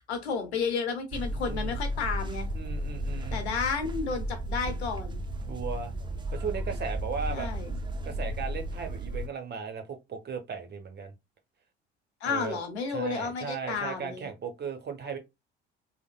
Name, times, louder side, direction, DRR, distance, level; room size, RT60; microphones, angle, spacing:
voice 1, 0.1-2.5 3.3-5.2 7.3-7.7 12.2-14.3, left 5 dB, 80° left, 0.9 m, -32 dB
sound 1, 1.1-9.3, right 1 dB, 15° right, 0.5 m, -34 dB
voice 2, 1.3-1.8 2.5-3.5 5.5-5.9 6.3-7.5 8.0-11.1 12.2-12.6 12.9-15.2, right 6 dB, 30° right, 0.9 m, -36 dB
3.3 x 2.1 x 2.3 m
figure-of-eight pair, 55°, 32 cm